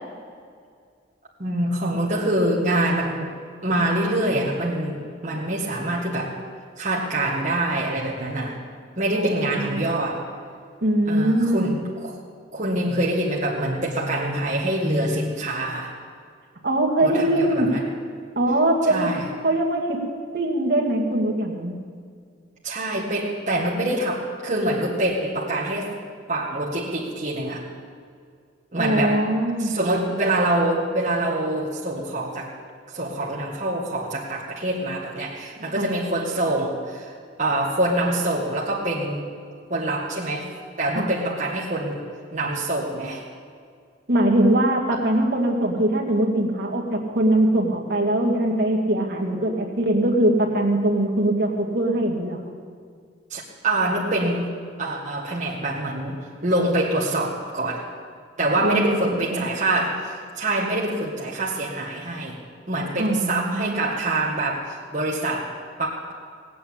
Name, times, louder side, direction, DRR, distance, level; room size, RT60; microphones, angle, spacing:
voice 1, 1.4-3.3 3.6-6.4 6.8-8.6 9.0-10.2 11.1-12.2 12.5-15.9 17.0-17.8 18.9-19.3 22.6-25.9 26.3-27.6 28.7-29.3 29.6-32.5 32.9-37.1 37.4-39.3 39.7-42.0 42.3-43.2 53.3-54.5 54.8-57.9 58.4-62.4 62.7-66.1, right 1 dB, 40° right, -5 dB, 1.7 m, -25 dB
voice 2, 9.1-9.8 10.8-11.6 16.6-17.7 18.4-19.1 19.4-20.0 20.3-21.7 28.8-29.7 35.8-35.9 40.9-41.1 44.1-52.4 58.6-59.5 63.0-63.8, right 1 dB, 55° right, -1 dB, 2.1 m, -22 dB
18.5 x 8.5 x 8.7 m, 2.1 s
head